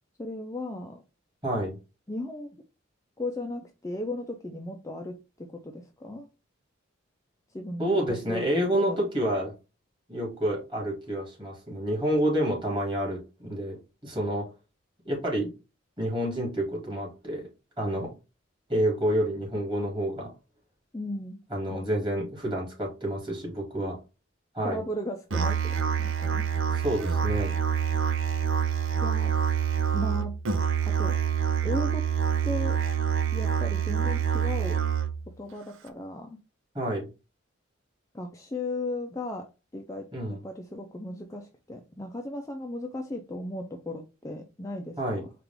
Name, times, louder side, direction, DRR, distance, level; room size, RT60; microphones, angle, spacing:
voice 1, 0.2-1.0 2.1-2.5 3.2-6.3 7.5-7.9 8.3-8.5 8.7-9.0 20.9-21.4 21.7-21.8 24.6-26.5 29.0-29.3 29.9-30.3 30.9-31.2 31.6-32.1 32.4-32.8 33.3-34.8 35.4-36.4 38.1-39.5 39.7-40.1 40.4-45.0, left 1 dB, 15° left, 0.4 m, -36 dB
voice 2, 1.4-1.8 7.8-9.5 10.1-14.5 15.0-15.5 16.0-17.5 17.8-18.1 18.7-20.3 21.5-24.0 24.5-24.8 26.7-27.5 36.7-37.1 40.1-40.4 45.0-45.2, right 1 dB, 25° right, 2.3 m, -28 dB
Musical instrument, 25.3-35.3, right 7 dB, 70° right, 0.5 m, -26 dB
4.6 x 2.5 x 3.5 m
head